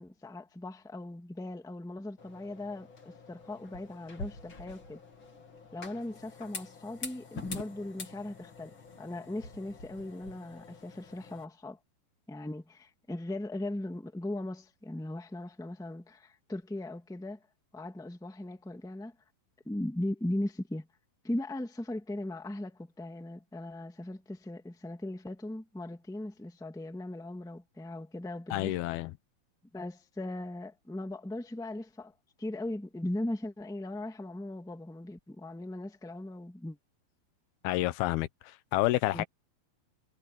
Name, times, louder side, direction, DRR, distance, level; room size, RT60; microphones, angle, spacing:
voice 1, 0.0-5.0 5.7-11.8 12.3-17.4 17.7-19.1 19.6-20.9 21.2-28.8 29.7-32.1 32.4-36.8 39.1-39.2, left 1 dB, ahead, 1.4 m, -38 dB
sound 1, 2.2-11.4, left 4 dB, 35° left, 3.1 m, -46 dB
voice 2, 28.5-29.1 37.6-38.3 38.7-39.2, left 17 dB, 85° left, 2.7 m, -28 dB
omnidirectional pair, 4.4 m